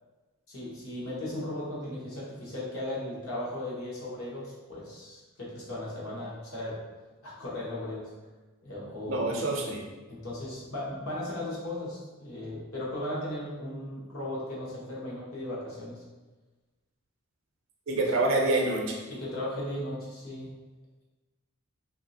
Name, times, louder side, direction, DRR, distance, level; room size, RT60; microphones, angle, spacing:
voice 1, 0.5-6.8 7.2-8.1 8.6-9.4 10.1-16.0 19.1-20.5, left 1 dB, 75° left, -7 dB, 1.1 m, -36 dB
voice 2, 9.1-9.8 17.9-19.0, right 2 dB, 60° right, 0 dB, 0.5 m, -26 dB
3.1 x 2.7 x 2.6 m, 1.2 s
head